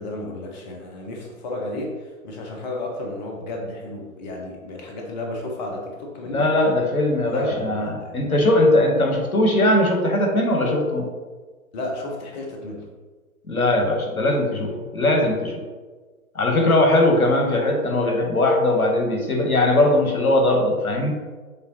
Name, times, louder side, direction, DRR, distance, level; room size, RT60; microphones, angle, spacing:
voice 1, 0.0-6.5 7.3-8.2 11.7-12.9, left 2 dB, 30° left, 1 dB, 0.6 m, -32 dB
voice 2, 6.2-11.0 13.5-15.6 16.3-21.1, left 1 dB, 80° left, 2 dB, 1.0 m, -20 dB
6.5 x 2.4 x 2.8 m, 1.4 s
figure-of-eight pair, 120°, 42 cm